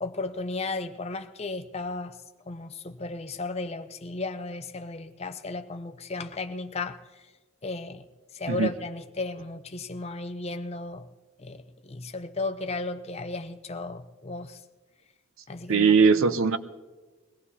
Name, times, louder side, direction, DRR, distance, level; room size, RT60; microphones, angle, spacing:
voice 1, 0.0-2.2 2.5-7.2 7.6-8.0 8.3-11.0 11.4-14.6 15.5-16.2, left 3 dB, 30° left, 8 dB, 0.5 m, -35 dB
voice 2, 15.7-16.6, right 5 dB, 65° right, 12 dB, 0.6 m, -20 dB
22.5 x 17.5 x 2.8 m, 1.3 s
head